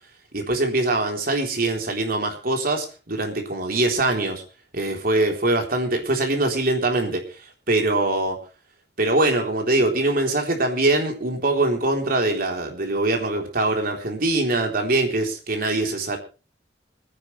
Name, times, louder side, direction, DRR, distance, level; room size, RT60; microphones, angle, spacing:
voice 1, 0.3-4.4 4.7-7.2 7.7-8.4 9.0-16.2, right 2 dB, 55° right, 3 dB, 3.7 m, -23 dB
26.0 x 10.5 x 3.3 m, 0.34 s
head